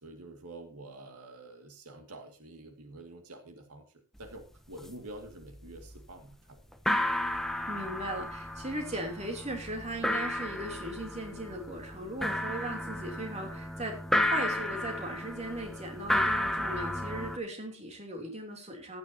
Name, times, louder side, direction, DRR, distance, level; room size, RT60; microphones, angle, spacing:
voice 1, 0.0-3.9 4.2-6.6, right 2 dB, 90° right, 5 dB, 2.1 m, -47 dB
sound 1, 4.2-4.3 4.6-5.1 5.4-6.0 6.3-6.4 6.7-17.4, left 1 dB, ahead, 0.9 m, -33 dB
voice 2, 7.7-19.0, right 1 dB, 30° right, 2 dB, 3.1 m, -38 dB
15.0 x 10.5 x 2.8 m, 0.35 s
head